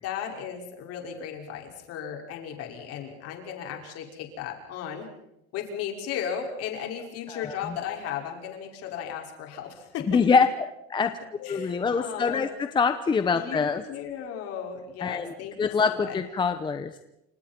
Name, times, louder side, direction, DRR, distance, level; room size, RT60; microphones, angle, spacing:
voice 1, 0.0-5.1 5.5-10.0 11.4-12.4 13.3-16.2, left 8 dB, 50° left, 2 dB, 5.7 m, -35 dB
voice 2, 7.3-7.8 10.1-11.2 11.5-13.8 15.0-17.0, left 5 dB, 15° left, 8 dB, 0.8 m, -25 dB
29.0 x 27.0 x 4.5 m, 0.83 s
cardioid pair, 170°, 30 cm